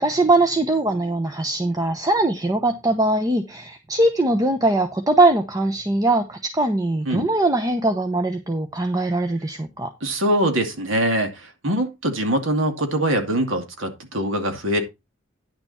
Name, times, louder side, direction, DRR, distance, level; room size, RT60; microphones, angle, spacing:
voice 1, 0.0-9.9, right 2 dB, 20° right, 7 dB, 0.8 m, -21 dB
voice 2, 10.0-14.8, right 1 dB, 85° right, 5 dB, 2.4 m, -23 dB
10.5 x 6.8 x 4.3 m, 0.24 s
head